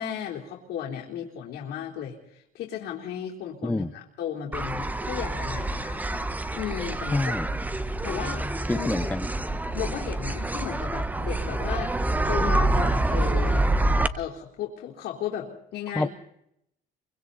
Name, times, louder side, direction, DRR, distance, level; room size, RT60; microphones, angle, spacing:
voice 1, 0.0-6.0 6.5-9.1 9.7-12.0 12.3-13.7 14.1-16.1, left 9 dB, 80° left, -1 dB, 3.8 m, -35 dB
sound 1, 4.5-14.1, right 2 dB, 10° right, 1.2 m, -27 dB
voice 2, 7.1-7.5 8.7-9.3 16.0-16.1, left 2 dB, 10° left, 10 dB, 0.8 m, -27 dB
27.5 x 24.5 x 4.1 m, 0.77 s
cardioid pair, 110°, 17 cm